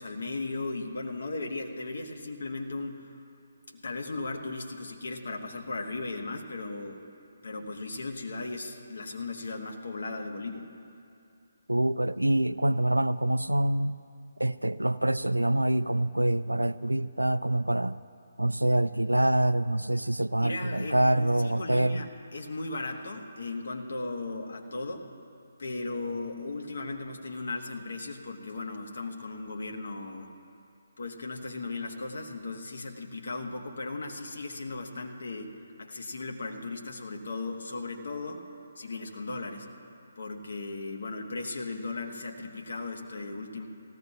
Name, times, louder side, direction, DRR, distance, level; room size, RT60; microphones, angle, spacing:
voice 1, 0.0-3.1 3.7-7.0 7.4-10.7 20.4-25.1 25.6-30.3 31.0-38.4 38.8-39.7 40.2-43.7, left 3 dB, 60° left, 2 dB, 1.3 m, -37 dB
voice 2, 11.7-14.0 14.4-18.0 18.4-22.0, right 1 dB, 85° right, 15 dB, 0.3 m, -26 dB
18.0 x 15.0 x 2.8 m, 2.5 s
figure-of-eight pair, 140°, 0 cm